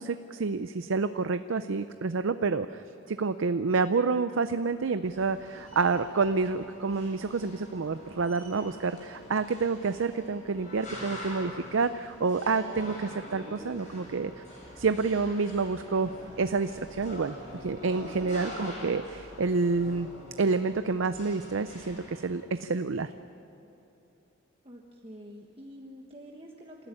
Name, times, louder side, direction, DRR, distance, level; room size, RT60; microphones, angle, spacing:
voice 1, 0.0-14.3 14.8-16.1 16.4-17.4 17.6-20.1 20.4-23.1, right 4 dB, 80° right, 11 dB, 0.6 m, -28 dB
sound 1, 5.0-22.3, left 1 dB, 40° left, 7.5 m, -45 dB
voice 2, 24.6-26.9, equal, 30° right, -1 dB, 1.4 m, -47 dB
27.5 x 14.0 x 9.9 m, 3.0 s
head